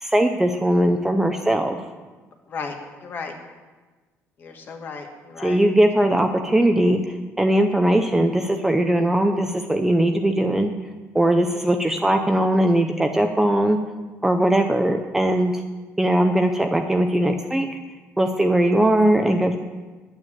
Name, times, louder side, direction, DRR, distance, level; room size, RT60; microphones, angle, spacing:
voice 1, 0.0-1.8 5.4-10.7 11.1-13.8 14.2-15.5 16.0-17.7 18.2-19.6, right 1 dB, 5° right, 5 dB, 0.5 m, -20 dB
voice 2, 2.5-3.3 4.4-5.6, left 5 dB, 40° left, 3 dB, 1.6 m, -35 dB
10.5 x 9.0 x 7.4 m, 1.3 s
cardioid pair, 175°, 5 cm